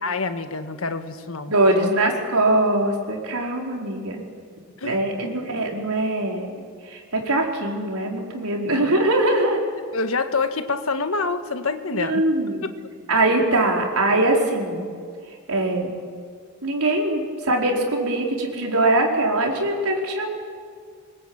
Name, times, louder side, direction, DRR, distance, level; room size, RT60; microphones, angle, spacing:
voice 1, 0.0-1.9 4.8-5.3 9.9-12.2 12.6-12.7, left 4 dB, 70° left, 9 dB, 1.6 m, -27 dB
voice 2, 1.5-4.2 4.8-6.6 6.9-9.6 11.9-12.7 13.1-14.9 15.5-15.9 16.6-20.3, right 2 dB, 90° right, 0 dB, 4.7 m, -22 dB
25.5 x 21.5 x 8.9 m, 2.1 s
head